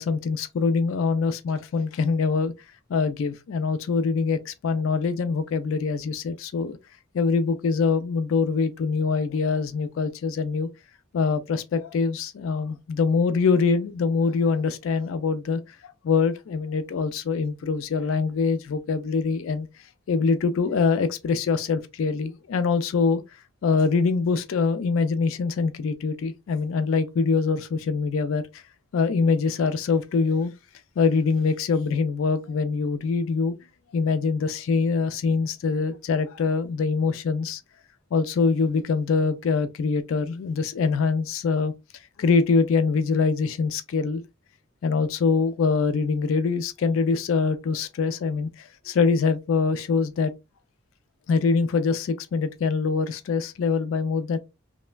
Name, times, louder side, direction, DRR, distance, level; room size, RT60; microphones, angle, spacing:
voice 1, 0.0-2.5 2.9-6.8 7.1-10.7 11.1-19.7 20.1-23.2 23.6-28.6 28.9-30.5 31.0-33.6 33.9-37.6 38.1-41.7 42.2-44.2 44.8-50.3 51.3-54.4, left 4 dB, 75° left, 0.3 m, -24 dB
3.1 x 2.1 x 2.2 m
head